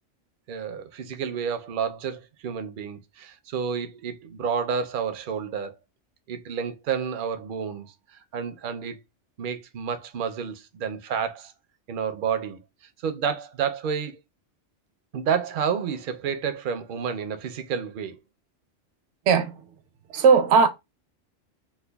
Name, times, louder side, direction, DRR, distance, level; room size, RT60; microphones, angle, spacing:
voice 1, 0.5-5.8 6.3-7.9 8.1-9.0 9.4-11.5 11.9-12.6 13.0-14.2 15.1-18.2, right 7 dB, 60° right, 0.6 m, -30 dB
voice 2, 19.3-19.6 20.1-20.7, right 5 dB, 80° right, 0.9 m, -17 dB
5.2 x 2.2 x 2.2 m
omnidirectional pair, 1.2 m